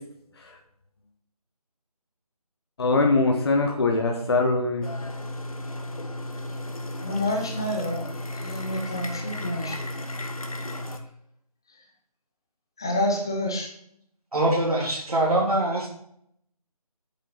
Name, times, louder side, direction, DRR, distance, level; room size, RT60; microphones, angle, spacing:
voice 1, 2.8-4.9, left 3 dB, 40° left, 2 dB, 1.5 m, -22 dB
sound 1, 4.8-11.0, left 1 dB, 65° left, 1.8 m, -34 dB
voice 2, 7.0-8.1 8.4-9.8 12.8-13.7, left 1 dB, 5° left, 1 dB, 0.5 m, -28 dB
voice 3, 14.3-15.9, right 1 dB, 70° right, -3 dB, 3.3 m, -23 dB
9.0 x 7.3 x 5.7 m, 0.70 s
figure-of-eight pair, 160°, 20 cm